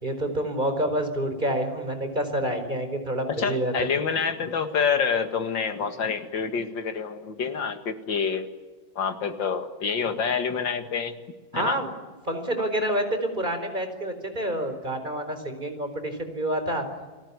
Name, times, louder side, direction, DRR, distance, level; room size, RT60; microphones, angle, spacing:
voice 1, 0.0-3.7 11.5-11.9 12.3-16.9, right 1 dB, 25° right, 7 dB, 4.6 m, -28 dB
voice 2, 3.3-8.5 9.0-11.2 11.5-11.8 12.6-12.7, left 6 dB, 85° left, 8 dB, 2.6 m, -27 dB
30.0 x 19.5 x 9.8 m, 1.3 s
omnidirectional pair, 2.0 m